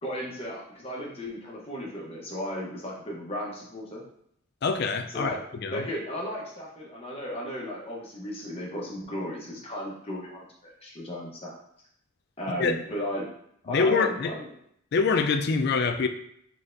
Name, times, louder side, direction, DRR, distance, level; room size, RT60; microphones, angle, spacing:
voice 1, 0.0-4.0 5.1-5.4 5.7-11.5 12.4-13.3 13.6-14.5, equal, 25° left, 0.9 m, -35 dB
voice 2, 4.6-5.9 12.6-12.8 13.7-14.4 14.9-16.1, left 4 dB, 50° left, 0.3 m, -25 dB
3.9 x 3.3 x 2.6 m
head